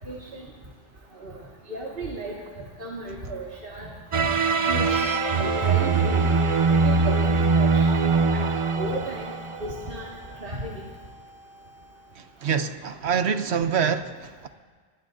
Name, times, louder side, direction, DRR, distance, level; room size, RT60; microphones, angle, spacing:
voice 1, 0.0-0.5 1.2-3.9 4.6-5.0 5.4-7.9 8.3-9.3 9.6-10.1 10.4-10.8, right 2 dB, 55° right, -4 dB, 2.1 m, -35 dB
sound 1, 4.1-9.9, right 4 dB, 40° right, 0.5 m, -22 dB
sound 2, 4.8-12.3, equal, 65° left, 4.5 m, -40 dB
voice 2, 12.2-14.5, right 7 dB, 75° right, 9 dB, 1.1 m, -26 dB
26.5 x 19.5 x 2.7 m, 1.5 s
omnidirectional pair, 1.1 m